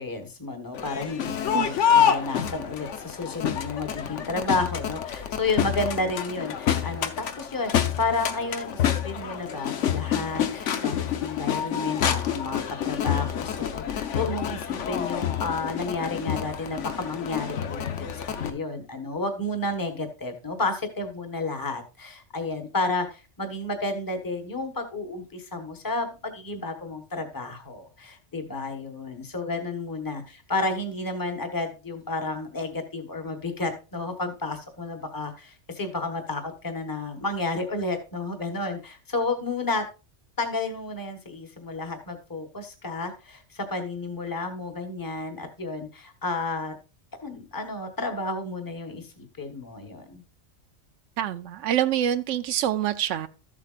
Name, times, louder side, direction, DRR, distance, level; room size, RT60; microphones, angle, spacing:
voice 1, 0.0-39.8 40.4-46.7 47.2-50.2, left 3 dB, 20° left, 6 dB, 1.2 m, -31 dB
Crowd, 0.7-18.5, left 9 dB, 80° left, 1.1 m, -28 dB
voice 2, 51.2-53.3, right 10 dB, 90° right, 11 dB, 0.9 m, -26 dB
13.0 x 7.4 x 2.5 m, 0.31 s
omnidirectional pair, 1.2 m